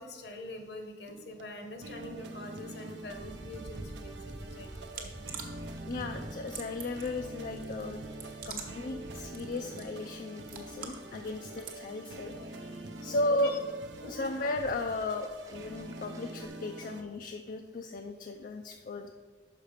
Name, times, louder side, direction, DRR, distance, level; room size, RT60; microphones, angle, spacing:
voice 1, 0.0-5.1 12.0-12.1 12.9-13.6 14.0-14.2, left 1 dB, 70° left, 5 dB, 1.0 m, -45 dB
sound 1, 1.1-17.0, right 2 dB, 85° right, 0.6 m, -45 dB
sound 2, 3.1-16.5, right 1 dB, 20° right, 0.4 m, -50 dB
sound 3, 4.6-11.8, right 6 dB, 50° right, 0.9 m, -48 dB
voice 2, 5.9-8.2 8.4-13.5 14.1-19.1, left 2 dB, 50° left, 5 dB, 0.4 m, -35 dB
5.8 x 5.7 x 4.9 m, 1.5 s
head